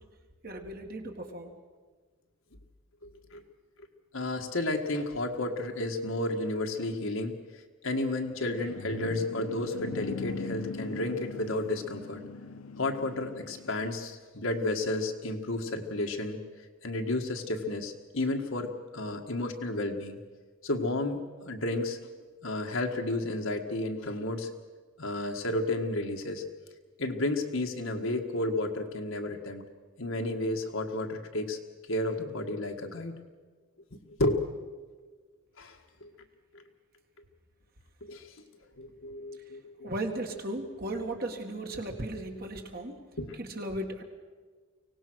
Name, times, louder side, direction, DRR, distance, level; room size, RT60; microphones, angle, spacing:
voice 1, 0.4-1.5 39.8-43.0 43.4-44.0, right 1 dB, 45° right, 4 dB, 2.0 m, -36 dB
voice 2, 3.0-3.4 4.1-7.4 7.8-12.2 12.8-16.4 16.8-20.2 20.6-22.0 22.4-24.5 25.0-26.4 27.0-29.6 30.0-31.6 31.9-33.2 34.2-34.5 35.6-36.1 36.5-36.6 38.0-38.3 38.8-39.9 40.9-41.0 43.2-43.4, left 2 dB, 70° left, 4 dB, 1.8 m, -32 dB
sound 1, 8.3-13.9, left 4 dB, 85° left, 0.7 m, -40 dB
24.0 x 18.0 x 6.3 m, 1.4 s
head